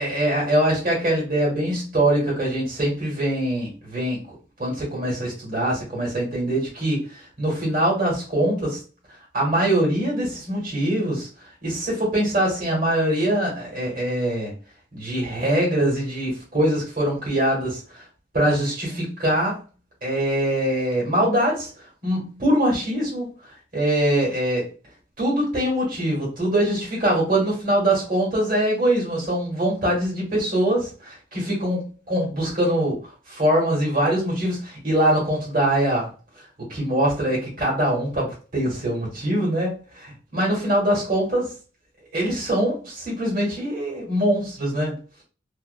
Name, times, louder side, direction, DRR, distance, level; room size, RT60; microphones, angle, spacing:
voice 1, 0.0-4.2 4.6-8.8 9.3-11.3 11.6-14.5 14.9-18.0 18.3-19.5 20.0-21.7 22.0-23.3 23.7-24.6 25.2-33.0 33.3-36.1 36.7-41.5 42.1-44.9, right 1 dB, 50° right, -5 dB, 1.2 m, -23 dB
2.4 x 2.0 x 2.5 m, 0.36 s
head